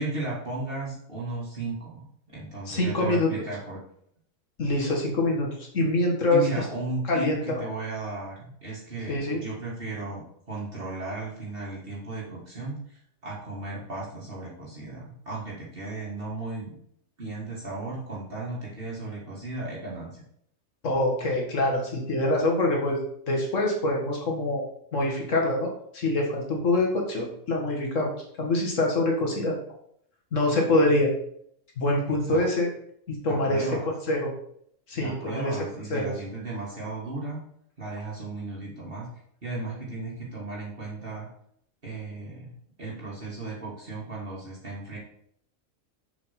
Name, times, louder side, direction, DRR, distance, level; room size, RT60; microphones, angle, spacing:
voice 1, 0.0-3.8 6.3-16.8 17.2-20.2 32.3-32.5 33.3-33.9 35.0-37.4 37.8-39.1 39.4-41.3 41.8-45.0, right 2 dB, 45° right, -5 dB, 2.0 m, -35 dB
voice 2, 2.7-3.3 4.6-6.7 7.1-7.7 9.1-9.4 20.8-24.7 24.9-29.6 30.3-31.1 31.8-32.7 33.1-33.7 34.1-34.3 34.9-35.7 35.9-36.1, left 2 dB, 75° left, 0 dB, 2.0 m, -25 dB
6.8 x 5.0 x 5.7 m, 0.69 s
omnidirectional pair, 1.3 m